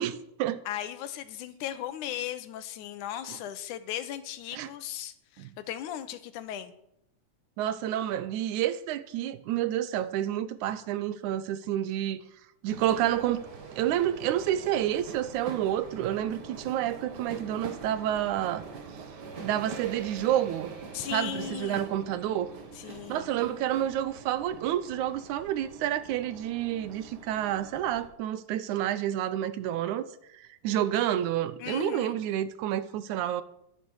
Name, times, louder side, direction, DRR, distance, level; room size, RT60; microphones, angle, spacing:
voice 1, 0.0-0.6 3.3-3.4 4.5-4.7 5.4-5.5 7.6-12.3 12.6-13.5 13.7-18.6 19.4-20.7 21.1-22.5 23.1-30.1 30.3-33.4, right 11 dB, 80° right, 2.1 m, -29 dB
voice 2, 0.7-6.7 20.9-22.0 22.8-23.3 31.6-32.1, left 11 dB, 80° left, 2.4 m, -37 dB
sound 1, 12.7-28.1, right 5 dB, 40° right, 1.7 m, -44 dB
12.5 x 10.5 x 6.3 m
omnidirectional pair, 3.5 m